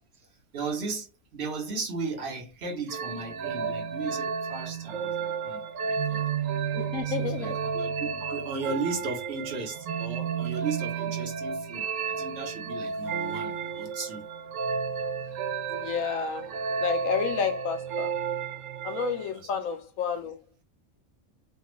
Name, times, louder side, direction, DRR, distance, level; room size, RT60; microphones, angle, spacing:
voice 1, 0.5-6.3 7.0-14.2 19.3-19.5, right 4 dB, 55° right, 1.1 m, -36 dB
sound 1, 2.9-19.3, right 6 dB, 75° right, 0.9 m, -32 dB
voice 2, 6.7-7.6 15.7-16.5 16.8-18.1 18.8-20.4, left 6 dB, 85° left, 1.1 m, -30 dB
3.3 x 2.3 x 3.0 m
omnidirectional pair, 1.4 m